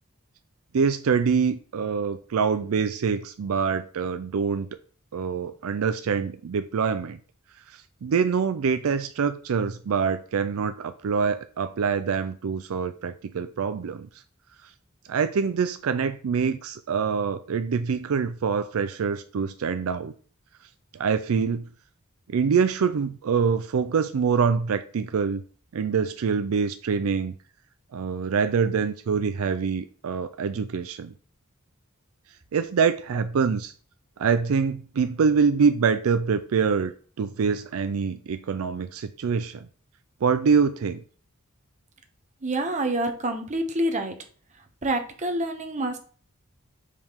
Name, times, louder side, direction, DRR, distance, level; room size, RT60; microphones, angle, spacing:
voice 1, 0.7-4.7 5.1-7.2 8.0-14.1 15.1-20.1 20.9-21.6 22.3-25.4 25.7-27.3 27.9-31.1 32.5-33.7 34.2-36.9 37.2-39.7 40.2-41.0, right 6 dB, 75° right, 0.4 m, -25 dB
voice 2, 42.4-44.1 44.8-46.0, right 1 dB, 35° right, 1.0 m, -27 dB
4.9 x 3.6 x 5.6 m
head